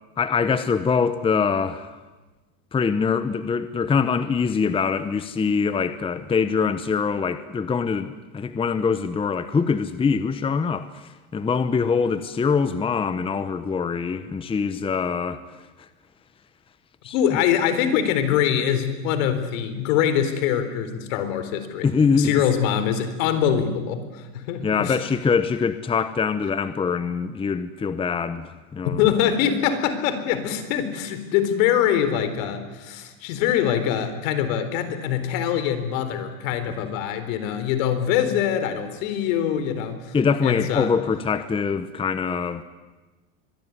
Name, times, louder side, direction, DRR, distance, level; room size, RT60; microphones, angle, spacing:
voice 1, 0.2-2.0 2.7-15.4 17.0-17.4 21.8-22.4 24.6-29.0 40.1-42.6, left 5 dB, 15° left, 12 dB, 0.9 m, -24 dB
voice 2, 17.1-25.0 29.0-40.1 40.4-40.9, left 9 dB, 65° left, 10 dB, 4.1 m, -23 dB
24.5 x 21.0 x 9.6 m, 1.2 s
supercardioid pair, 135°, 43 cm